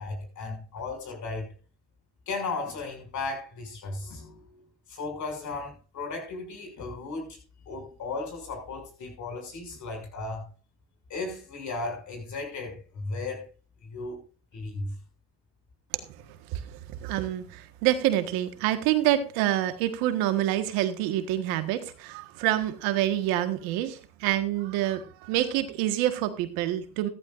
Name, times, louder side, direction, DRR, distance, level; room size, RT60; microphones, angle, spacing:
voice 1, 0.0-1.5 2.3-4.6 4.9-7.4 7.6-10.5 11.1-13.5 13.8-14.2 14.5-14.9, left 3 dB, 55° left, 6.6 m, -35 dB
voice 2, 16.5-27.1, right 13 dB, 85° right, 1.6 m, -27 dB
15.0 x 13.5 x 2.5 m
supercardioid pair, 85°, 34 cm